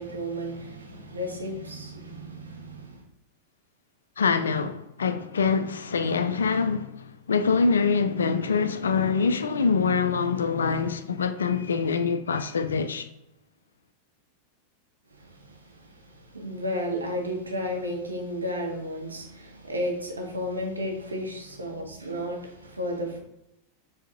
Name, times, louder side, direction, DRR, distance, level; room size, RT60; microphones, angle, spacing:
voice 1, 0.0-3.0 15.2-23.2, equal, 80° right, 0.8 m, -33 dB
voice 2, 4.2-13.1, left 5 dB, 70° left, 0.3 m, -25 dB
4.5 x 2.8 x 3.6 m
figure-of-eight pair, 90°, 0 cm